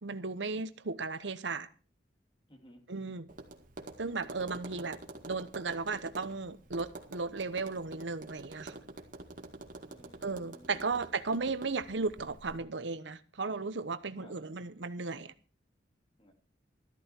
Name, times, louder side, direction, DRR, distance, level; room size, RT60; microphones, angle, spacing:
voice 1, 0.0-1.7 2.9-3.3 4.0-5.0 5.3-8.8 10.2-15.3, right 4 dB, 80° right, 1.0 m, -35 dB
voice 2, 2.5-2.8 9.9-11.0 14.1-14.4 16.2-16.3, equal, 30° left, 3.0 m, -57 dB
Tap, 3.3-12.6, right 2 dB, 50° right, 2.0 m, -48 dB
13.5 x 13.0 x 4.5 m
head